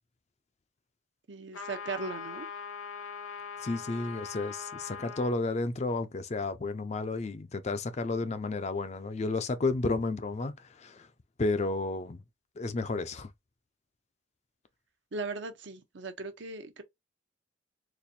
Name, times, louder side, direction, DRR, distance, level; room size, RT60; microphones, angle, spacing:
voice 1, 1.3-2.5 15.1-16.8, right 3 dB, 60° right, 0.7 m, -38 dB
sound 1, 1.5-5.4, left 6 dB, 90° left, 1.0 m, -41 dB
voice 2, 3.6-11.1 11.4-12.2 12.6-13.3, left 3 dB, 35° left, 0.4 m, -32 dB
4.1 x 2.5 x 2.6 m
head